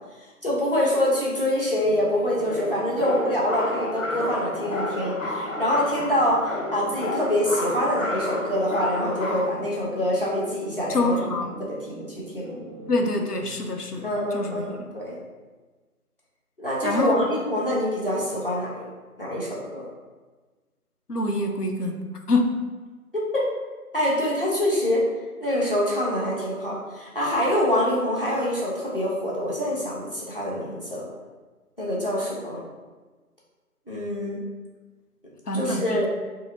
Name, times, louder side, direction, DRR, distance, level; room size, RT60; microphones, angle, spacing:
voice 1, 0.2-11.3 11.7-12.6 14.0-15.2 16.6-18.9 19.2-19.8 23.1-23.5 23.9-25.0 25.4-31.1 31.8-32.6 33.9-34.4 35.5-36.1, left 1 dB, 35° left, -5 dB, 1.1 m, -25 dB
sound 1, 1.8-13.1, right 1 dB, ahead, 0.5 m, -42 dB
sound 2, 2.5-9.5, left 2 dB, 60° left, 0.6 m, -31 dB
voice 2, 10.9-11.5 12.9-15.0 16.8-17.3 21.1-22.7 35.5-36.2, left 2 dB, 90° left, 4 dB, 0.8 m, -26 dB
4.0 x 2.9 x 3.8 m, 1.3 s
figure-of-eight pair, 175°, 45 cm